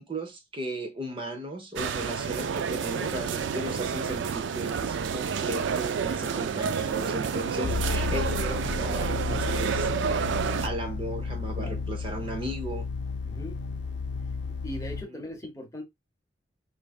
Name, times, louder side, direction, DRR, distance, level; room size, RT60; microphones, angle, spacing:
voice 1, 0.0-12.9 15.1-15.2, right 1 dB, 30° right, 0.6 m, -36 dB
sound 1, 1.8-10.7, right 6 dB, 80° right, 0.4 m, -29 dB
sound 2, 7.6-15.0, left 4 dB, 70° left, 0.6 m, -32 dB
voice 2, 13.2-13.6 14.6-15.8, left 1 dB, 20° left, 0.8 m, -39 dB
4.5 x 2.6 x 2.3 m
head